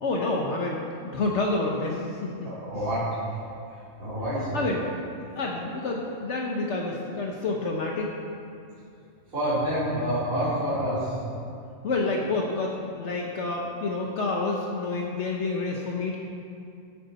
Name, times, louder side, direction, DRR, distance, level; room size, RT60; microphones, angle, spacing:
voice 1, 0.0-2.5 4.5-8.1 11.8-16.2, left 3 dB, 65° left, -1 dB, 1.2 m, -28 dB
voice 2, 2.4-3.1 3.7-4.6 9.3-11.2, equal, 75° right, -13 dB, 3.2 m, -28 dB
13.5 x 8.4 x 4.1 m, 2.5 s
omnidirectional pair, 1.4 m